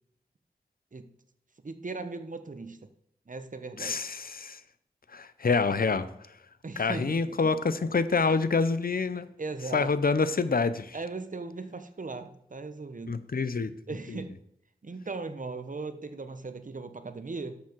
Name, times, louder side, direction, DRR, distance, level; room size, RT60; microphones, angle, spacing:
voice 1, 1.6-2.8 3.3-4.0 6.6-7.5 8.3-8.4 9.4-9.9 10.9-13.2 13.9-14.3 14.8-17.6, right 3 dB, 55° right, 9 dB, 1.1 m, -38 dB
voice 2, 3.8-4.6 5.1-6.1 6.8-9.3 9.7-11.0 13.1-13.7 14.1-14.2, left 4 dB, 65° left, 13 dB, 0.8 m, -27 dB
12.0 x 7.2 x 4.7 m, 0.74 s
wide cardioid pair, 55°, 16 cm